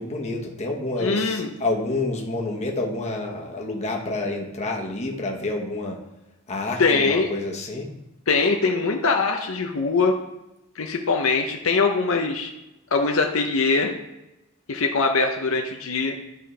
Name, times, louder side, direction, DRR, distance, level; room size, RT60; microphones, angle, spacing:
voice 1, 0.0-6.0 6.5-7.9, left 2 dB, 30° left, 0 dB, 1.1 m, -28 dB
voice 2, 1.0-1.5 6.8-7.3 8.3-10.1 10.8-12.5 12.9-13.9 14.7-16.1, left 4 dB, 70° left, 3 dB, 0.7 m, -22 dB
11.0 x 5.1 x 3.3 m, 0.95 s
head